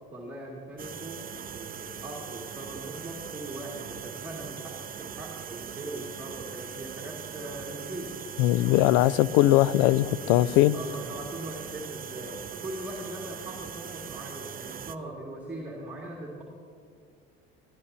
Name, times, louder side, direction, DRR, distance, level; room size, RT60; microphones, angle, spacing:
voice 1, 0.1-8.1 10.7-16.4, right 1 dB, 5° right, -3 dB, 2.2 m, -40 dB
sound 1, 0.8-15.0, right 7 dB, 25° right, 0.6 m, -41 dB
voice 2, 8.4-10.8, left 15 dB, 65° left, 20 dB, 0.4 m, -20 dB
20.5 x 12.0 x 2.8 m, 2.3 s
hypercardioid pair, 65°, 32 cm